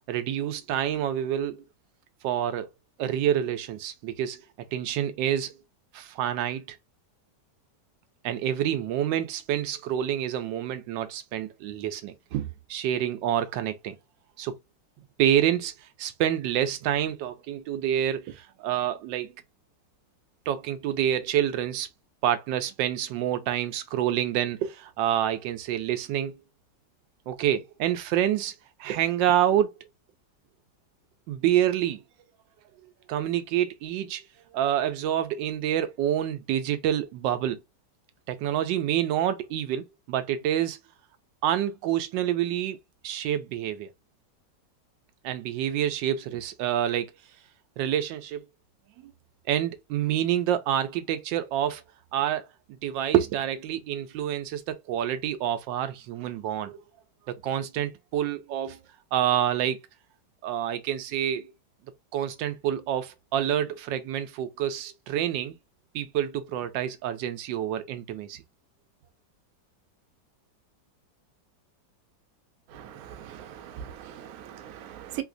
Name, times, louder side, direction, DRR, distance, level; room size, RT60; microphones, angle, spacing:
voice 1, 0.1-1.6 2.2-2.7 3.0-4.4 4.7-5.5 5.9-6.6 8.2-14.0 14.4-14.5 15.2-15.7 16.0-19.3 20.5-21.9 22.2-26.3 27.3-28.5 28.8-29.7 31.3-32.0 33.1-34.2 34.5-37.6 38.3-40.8 41.4-42.8 43.0-43.9 45.2-47.1 47.8-48.4 49.0-49.1 49.5-51.8 52.1-52.5 52.8-56.8 57.3-58.8 59.1-59.8 60.4-61.5 62.1-65.6 65.9-68.4, right 11 dB, 90° right, 1.3 m, -27 dB
voice 2, 72.7-75.2, right 11 dB, 70° right, 0.9 m, -40 dB
3.2 x 2.8 x 2.5 m
omnidirectional pair, 1.9 m